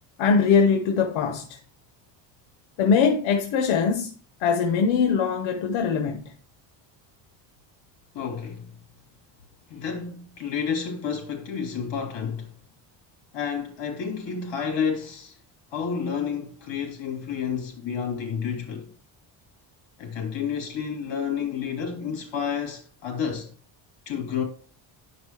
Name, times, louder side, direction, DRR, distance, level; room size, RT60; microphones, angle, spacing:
voice 1, 0.2-1.6 2.8-4.1 4.4-6.3, left 5 dB, 85° left, 1.1 m, -22 dB
voice 2, 8.1-8.7 9.7-12.5 13.3-15.4 15.7-18.9 20.0-23.5 24.0-24.4, left 7 dB, 65° left, 3.4 m, -30 dB
10.0 x 5.3 x 3.2 m
cardioid pair, 140°, 47 cm